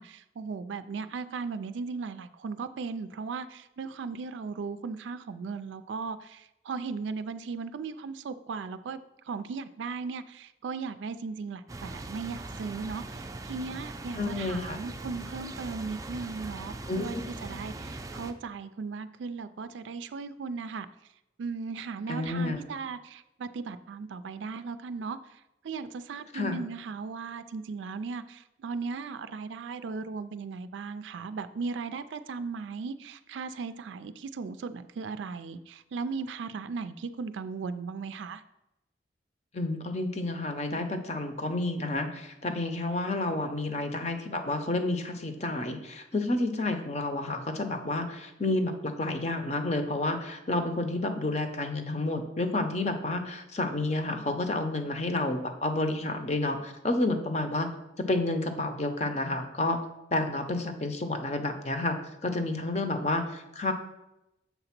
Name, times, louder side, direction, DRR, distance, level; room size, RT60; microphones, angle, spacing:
voice 1, 0.0-9.0 9.2-20.9 21.4-38.4, right 4 dB, 85° right, 11 dB, 0.4 m, -37 dB
sound 1, 11.7-18.3, right 2 dB, 20° right, 0.4 m, -40 dB
voice 2, 14.2-14.8 16.9-17.2 22.1-22.6 26.3-26.6 39.5-57.7 58.0-59.8 60.1-62.0 62.2-63.7, left 2 dB, 35° left, 6 dB, 0.7 m, -30 dB
7.1 x 3.9 x 5.9 m, 0.91 s
head